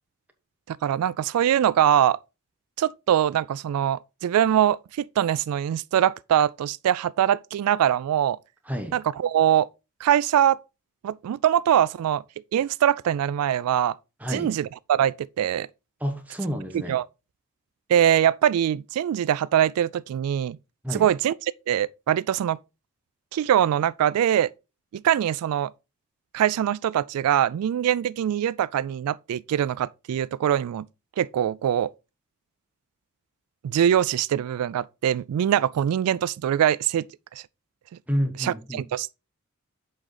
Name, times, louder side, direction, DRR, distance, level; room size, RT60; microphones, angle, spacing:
voice 1, 0.7-2.2 2.8-8.4 8.9-9.7 10.0-10.6 11.0-12.2 12.5-14.0 14.3-15.7 16.9-17.1 17.9-20.6 20.9-21.3 21.7-22.6 23.3-24.5 24.9-25.7 26.3-30.9 31.2-31.9 33.6-37.1 38.4-39.2, right 10 dB, 90° right, 0.3 m, -23 dB
voice 2, 16.0-17.0 20.8-21.1 38.1-38.8, equal, 5° right, 1.1 m, -29 dB
7.5 x 5.0 x 3.9 m
head